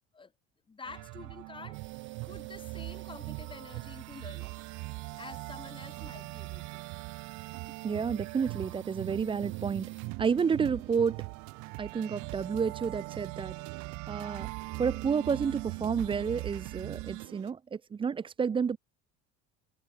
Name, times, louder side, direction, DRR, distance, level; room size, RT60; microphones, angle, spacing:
voice 1, 0.7-1.8 2.3-4.6 5.2-6.8, left 4 dB, 15° left, 3.5 m, -48 dB
sound 1, 0.8-17.3, right 26 dB, 70° right, 1.8 m, -41 dB
sound 2, 1.7-10.1, right 11 dB, 40° right, 6.6 m, -56 dB
voice 2, 7.8-9.9 10.2-11.2 11.8-13.6 14.1-14.5 14.8-18.8, right 6 dB, 15° right, 0.6 m, -30 dB
sound 3, 9.8-17.5, right 40 dB or more, 85° right, 3.1 m, -49 dB
cardioid pair, 150°, 31 cm